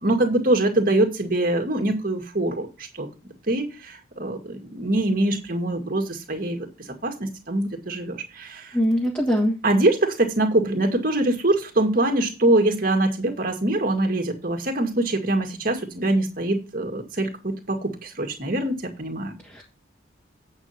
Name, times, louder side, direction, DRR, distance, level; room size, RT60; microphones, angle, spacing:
voice 1, 0.0-3.1 3.5-6.7 7.0-8.8 9.6-19.3, right 1 dB, 45° right, 4 dB, 2.1 m, -23 dB
voice 2, 8.7-9.5 19.5-19.6, equal, 10° left, -3 dB, 1.8 m, -22 dB
8.8 x 6.5 x 4.3 m, 0.30 s
head